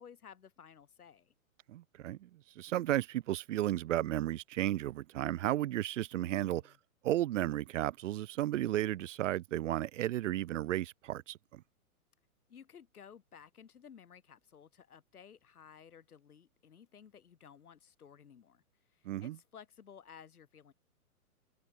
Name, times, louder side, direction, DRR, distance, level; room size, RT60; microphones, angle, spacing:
voice 1, 0.0-1.3 6.3-6.8 12.5-18.6 18.9-20.7, left 7 dB, 85° left, 4.7 m, -56 dB
voice 2, 1.7-2.3 2.6-6.6 7.0-11.6 19.0-19.4, right 13 dB, 60° right, 0.7 m, -33 dB
hypercardioid pair, 140°, 44 cm